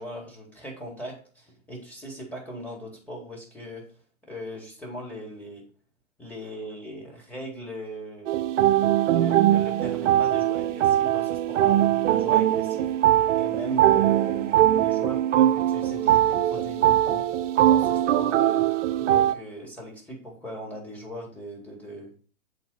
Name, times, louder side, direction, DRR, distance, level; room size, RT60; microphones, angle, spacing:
voice 1, 0.0-3.8 4.2-5.6 6.2-8.3 9.1-12.9 13.3-17.2 17.6-18.6 19.0-22.1, equal, 5° left, -3 dB, 2.1 m, -39 dB
sound 1, 8.3-19.3, right 12 dB, 60° right, 0.6 m, -21 dB
7.9 x 4.4 x 4.0 m, 0.41 s
hypercardioid pair, 140°, 42 cm